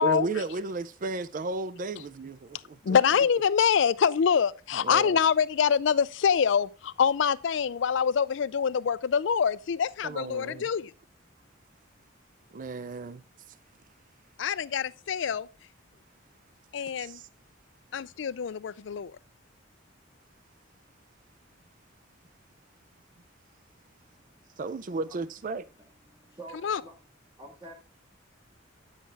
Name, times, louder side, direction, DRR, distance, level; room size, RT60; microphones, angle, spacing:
voice 1, 0.0-3.0 4.8-5.2 10.0-10.7 12.5-13.2 17.0-17.2 24.6-25.7, right 3 dB, 40° right, 0.4 m, -34 dB
voice 2, 2.8-10.9 14.4-15.5 16.7-17.2 17.9-19.2 26.6-26.8, left 7 dB, 65° left, 0.4 m, -25 dB
voice 3, 24.0-24.6 25.1-25.2 25.8-26.9 27.4-27.7, right 2 dB, 15° right, 1.0 m, -48 dB
9.1 x 6.4 x 3.4 m
head